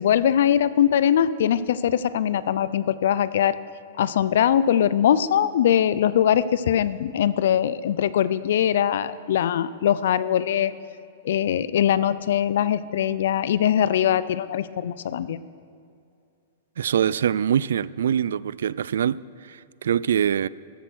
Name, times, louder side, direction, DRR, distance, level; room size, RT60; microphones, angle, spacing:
voice 1, 0.0-3.6 4.0-10.7 11.2-15.4, left 10 dB, 55° left, 16 dB, 0.5 m, -21 dB
voice 2, 16.8-20.5, right 9 dB, 85° right, 20 dB, 0.3 m, -24 dB
13.5 x 11.0 x 6.3 m, 2.4 s
supercardioid pair, 180°, 0 cm